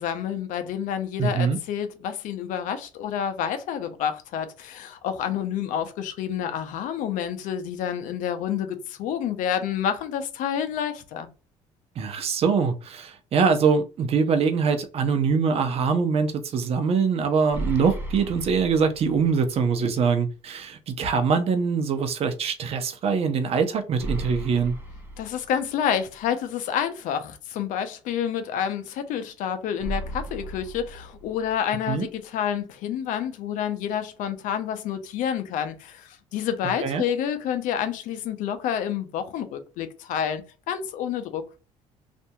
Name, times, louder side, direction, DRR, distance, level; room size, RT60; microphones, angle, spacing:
voice 1, 0.0-11.3 25.2-41.4, left 9 dB, 75° left, 0.6 m, -29 dB
voice 2, 1.2-1.6 12.0-24.7 31.9-32.1 36.8-37.0, right 5 dB, 50° right, 0.6 m, -23 dB
sound 1, 17.5-19.5 19.9-20.0 24.0-26.0 29.8-31.8, right 1 dB, 15° right, 0.8 m, -35 dB
2.7 x 2.5 x 2.2 m
cardioid pair, 100°, 13 cm